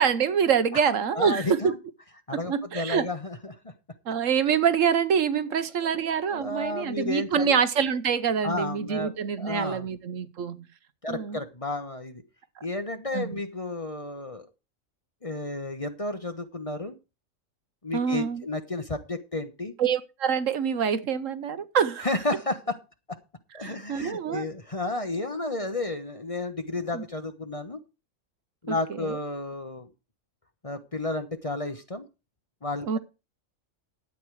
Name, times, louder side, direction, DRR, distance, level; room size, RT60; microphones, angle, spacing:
voice 1, 0.0-1.8 2.3-3.1 4.1-10.6 11.1-11.4 13.1-13.4 17.9-18.4 19.8-22.1 23.6-24.5 26.9-27.0 28.7-29.2 32.8-33.0, right 7 dB, 70° right, 1.3 m, -26 dB
voice 2, 0.7-1.8 2.3-3.6 6.3-7.6 8.4-9.1 9.4-9.9 11.0-12.2 12.6-14.5 15.2-17.0 17.8-19.7 22.0-22.8 23.1-23.2 23.5-27.8 28.6-29.9 30.6-32.0 32.6-33.0, left 2 dB, 25° left, 1.1 m, -32 dB
12.5 x 8.6 x 4.8 m
omnidirectional pair, 1.4 m